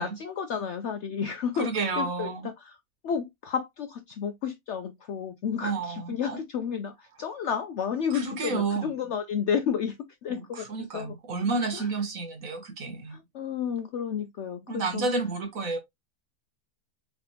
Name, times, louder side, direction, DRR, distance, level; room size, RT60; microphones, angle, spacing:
voice 1, 0.0-2.8 3.0-11.2 11.7-11.9 13.1-15.1, left 7 dB, 70° left, 0.7 m, -32 dB
voice 2, 1.6-2.5 5.6-6.4 8.1-8.9 10.3-10.4 10.7-13.2 14.7-15.8, right 3 dB, 60° right, 1.6 m, -30 dB
4.0 x 3.6 x 2.7 m
omnidirectional pair, 1.6 m